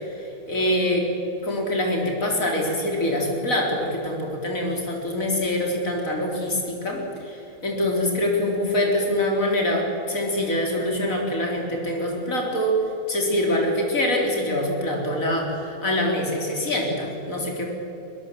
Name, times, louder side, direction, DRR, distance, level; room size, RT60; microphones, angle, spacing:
voice 1, 0.5-1.1 1.4-12.8 13.1-17.7, left 1 dB, 70° left, 0 dB, 4.4 m, -24 dB
23.0 x 20.5 x 7.6 m, 3.0 s
omnidirectional pair, 1.5 m